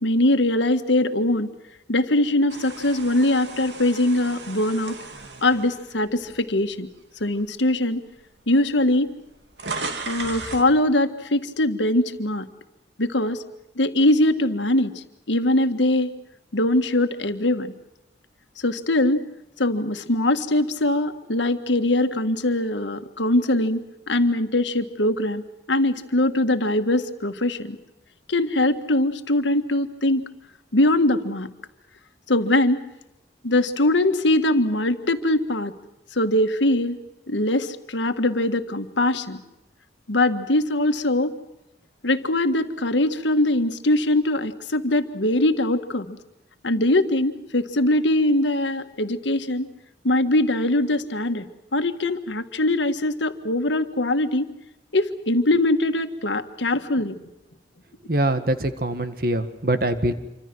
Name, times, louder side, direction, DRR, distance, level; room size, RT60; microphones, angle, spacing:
voice 1, 0.0-1.5 1.9-5.0 5.4-6.9 7.2-8.0 8.5-9.1 10.1-12.5 13.0-13.4 13.8-16.1 16.5-17.7 18.6-19.2 19.6-23.8 24.1-25.4 25.7-27.8 28.3-30.2 30.7-31.5 32.3-32.8 33.4-35.7 36.1-37.0 37.3-39.4 40.1-41.3 42.0-46.2 46.6-49.7 50.0-51.5 51.7-54.5 54.9-57.2, left 1 dB, 90° left, 8 dB, 1.7 m, -22 dB
sound 1, 2.5-6.7 7.3-7.5 8.4-8.5 8.7-10.7, right 4 dB, 80° right, 2.7 m, -36 dB
voice 2, 58.1-60.1, right 1 dB, 55° right, 9 dB, 1.8 m, -23 dB
27.5 x 25.0 x 6.2 m, 0.94 s
head